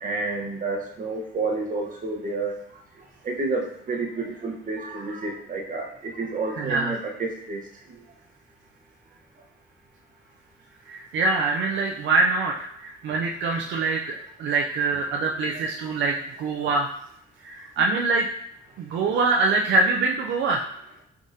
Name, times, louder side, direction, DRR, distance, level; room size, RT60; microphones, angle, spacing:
voice 1, 0.0-2.6 3.2-7.6 15.3-15.4 15.8-16.2 17.9-18.0, right 3 dB, 40° right, 0 dB, 1.0 m, -30 dB
voice 2, 6.6-6.9 10.9-16.9 17.4-18.3 18.8-20.7, right 3 dB, 70° right, 1 dB, 0.5 m, -24 dB
4.8 x 3.5 x 2.7 m, 0.72 s
cardioid pair, 90°, 20 cm